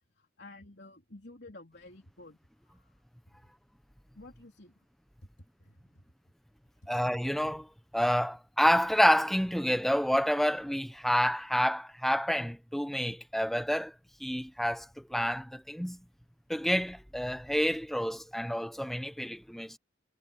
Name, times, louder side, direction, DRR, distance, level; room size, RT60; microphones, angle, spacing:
voice 1, 0.2-2.4 2.7-2.9 3.3-3.4 4.1-4.7 5.6-6.0, left 2 dB, 55° left, 4.2 m, -51 dB
voice 2, 6.9-7.7 7.9-13.9 14.2-16.0 16.5-19.8, equal, ahead, 1.1 m, -28 dB
head